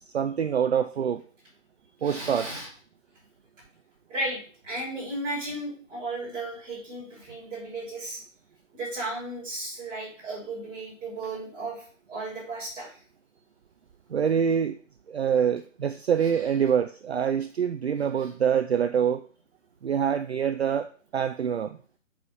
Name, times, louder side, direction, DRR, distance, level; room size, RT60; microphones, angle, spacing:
voice 1, 0.0-1.2 2.0-2.6 14.1-14.8 15.1-19.2 19.8-21.8, right 8 dB, 55° right, 10 dB, 0.5 m, -25 dB
voice 2, 2.0-2.7 4.1-4.4 4.6-8.2 8.7-12.9, right 2 dB, 10° right, -9 dB, 4.5 m, -35 dB
8.0 x 5.0 x 5.6 m, 0.42 s
hypercardioid pair, 170°, 40 cm